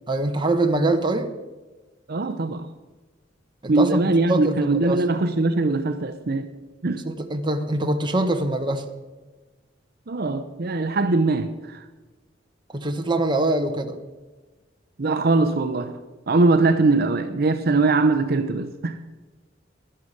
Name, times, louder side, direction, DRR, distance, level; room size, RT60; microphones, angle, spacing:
voice 1, 0.1-1.3 3.6-5.0 7.0-8.8 12.7-14.0, right 2 dB, 25° right, 1.1 m, -23 dB
voice 2, 2.1-2.7 3.7-6.5 6.8-7.0 10.1-11.8 15.0-16.0 16.3-19.1, right 3 dB, 55° right, 0.7 m, -21 dB
11.5 x 11.0 x 6.5 m
head